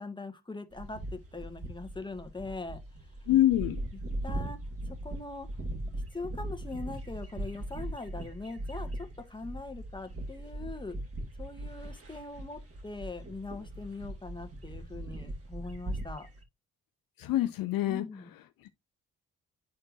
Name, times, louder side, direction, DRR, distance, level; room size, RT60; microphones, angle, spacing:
voice 1, 0.0-2.8 3.9-4.6 4.9-5.5 5.9-11.0 11.4-16.3 17.9-18.3, left 3 dB, 10° left, 1.7 m, -42 dB
sound 1, 0.7-16.4, right 1 dB, 35° right, 2.4 m, -39 dB
voice 2, 3.3-3.8 17.2-18.0, left 13 dB, 60° left, 0.7 m, -25 dB
11.5 x 4.4 x 2.5 m
hypercardioid pair, 45°, 39 cm